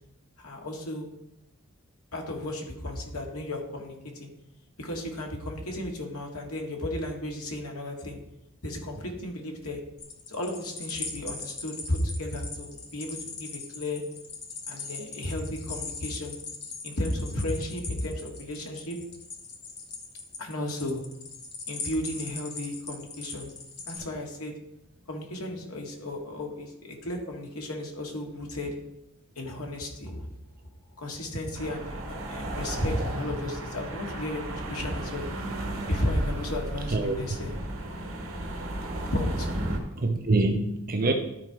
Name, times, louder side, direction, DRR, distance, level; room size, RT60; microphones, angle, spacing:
voice 1, 0.4-1.1 2.1-4.3 4.8-8.2 8.6-9.8 10.3-14.0 14.7-16.4 16.8-19.0 20.4-21.0 21.7-23.5 23.9-24.5 25.1-28.7 29.4-30.3 31.0-35.3 35.9-37.7 39.1-39.5, left 1 dB, 90° left, 0 dB, 2.0 m, -34 dB
sound 1, 10.0-24.0, left 4 dB, 50° left, 1.4 m, -40 dB
sound 2, 31.5-39.8, right 1 dB, 65° right, 1.6 m, -34 dB
voice 2, 36.9-37.4 39.9-41.1, right 2 dB, 40° right, 5 dB, 0.7 m, -25 dB
12.5 x 4.4 x 4.9 m, 0.85 s
head